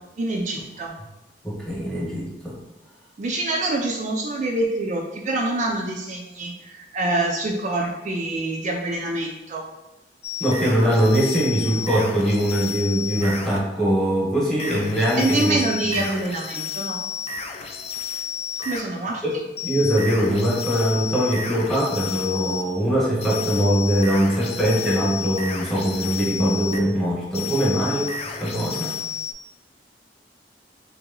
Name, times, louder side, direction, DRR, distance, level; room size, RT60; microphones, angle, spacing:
voice 1, 0.2-0.9 3.2-9.6 15.2-17.0 18.6-19.2, right 2 dB, 40° right, 0 dB, 0.4 m, -26 dB
voice 2, 1.4-2.6 10.4-15.6 15.9-16.0 19.2-19.3 19.6-28.1 28.4-28.9, equal, 5° left, -4 dB, 1.0 m, -22 dB
sound 1, 10.2-13.6 14.6-18.9 19.6-22.7 23.2-26.8 27.3-29.3, left 6 dB, 35° left, 0.3 m, -32 dB
3.0 x 2.9 x 3.7 m, 0.99 s
head